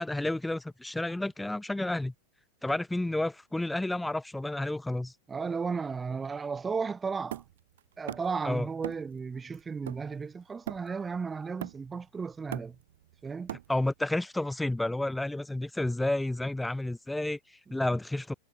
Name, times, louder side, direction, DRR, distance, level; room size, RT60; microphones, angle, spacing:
voice 1, 0.0-2.1 2.6-5.1 8.4-8.7 13.7-18.3, left 1 dB, 5° left, 0.9 m, -31 dB
voice 2, 5.3-7.4 8.0-12.8 13.2-13.5, right 5 dB, 15° right, 1.5 m, -34 dB
Hammer, 7.3-8.4 8.8-9.2 9.5-11.1 11.6-12.1 12.3-14.0, right 12 dB, 60° right, 4.5 m, -41 dB
figure-of-eight pair, 90°, 0 cm